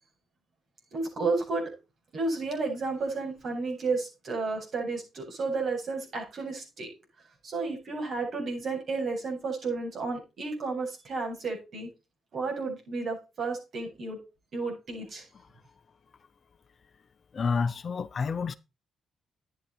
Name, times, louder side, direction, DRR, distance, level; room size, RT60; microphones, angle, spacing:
voice 1, 0.9-1.7 2.1-6.9 7.4-11.9 12.3-14.2 14.5-15.2, right 3 dB, 55° right, 7.9 m, -32 dB
voice 2, 17.3-18.6, left 5 dB, 45° left, 0.7 m, -29 dB
10.5 x 10.0 x 4.2 m
cardioid pair, 90°, 0 cm